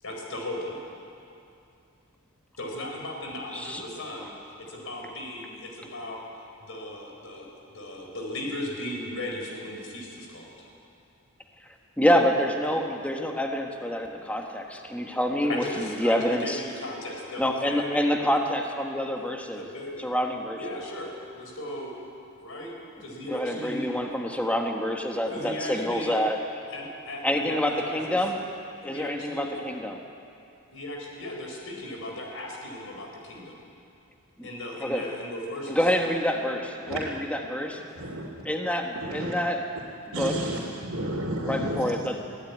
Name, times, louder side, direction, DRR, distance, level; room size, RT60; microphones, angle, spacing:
voice 1, 0.0-0.8 2.6-4.3 4.6-6.2 6.6-7.5 7.7-10.7 15.4-18.2 19.5-20.0 20.6-21.9 22.4-22.7 23.0-23.9 25.3-26.2 26.7-28.2 28.9-29.6 30.7-33.6 34.4-35.9, left 1 dB, 70° left, 1 dB, 4.5 m, -36 dB
voice 2, 12.0-16.6 17.4-19.6 20.0-20.8 23.3-26.4 27.2-28.4 28.8-30.0 34.4-34.5 34.8-35.0 35.7-37.8 38.4-39.6 40.2-40.4 41.5-42.2, equal, 5° left, 2 dB, 1.4 m, -27 dB
voice 3, 38.0-38.3 38.9-39.3 40.1-41.9, right 1 dB, 90° right, -4 dB, 2.6 m, -32 dB
22.5 x 16.0 x 9.5 m, 2.6 s
head